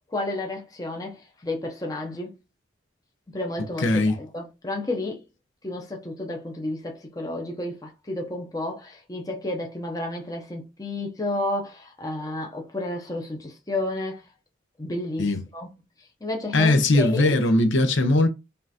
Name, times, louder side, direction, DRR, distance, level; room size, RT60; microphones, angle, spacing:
voice 1, 0.1-2.3 3.3-5.2 5.6-14.2 14.8-15.7 16.2-17.4, left 2 dB, 20° left, 0.7 m, -31 dB
voice 2, 3.8-4.2 15.2-15.4 16.5-18.3, left 2 dB, 70° left, 0.8 m, -20 dB
5.4 x 2.5 x 2.8 m
head